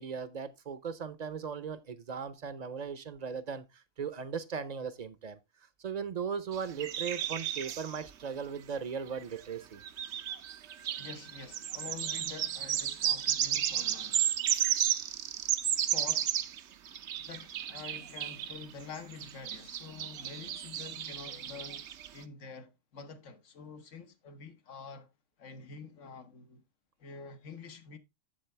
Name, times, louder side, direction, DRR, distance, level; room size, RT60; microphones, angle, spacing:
voice 1, 0.0-5.4 5.8-9.8, right 6 dB, 40° right, 0.7 m, -38 dB
sound 1, 6.5-8.0 9.2-9.3 9.8-16.6 16.9-22.1, right 10 dB, 70° right, 0.9 m, -33 dB
voice 2, 11.0-14.4 15.9-16.4 17.2-21.9 22.1-25.1 25.4-26.6 27.0-28.0, left 5 dB, 80° left, 1.4 m, -47 dB
7.5 x 7.4 x 3.2 m
omnidirectional pair, 1.3 m